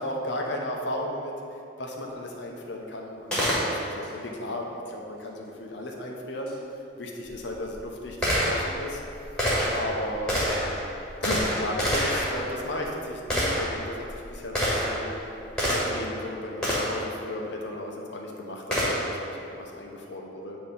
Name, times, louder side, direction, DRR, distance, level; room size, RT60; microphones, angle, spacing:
voice 1, 0.0-1.3 1.8-6.5 7.0-9.0 9.7-10.9 11.2-15.2 15.7-20.6, left 1 dB, 65° left, 1 dB, 0.8 m, -35 dB
Gunshot gunfire, 3.3-4.1 6.5-6.6 7.3-16.1 16.6-17.1 18.7-19.2, equal, 5° left, 1.5 m, -28 dB
8.6 x 3.0 x 5.4 m, 2.6 s
head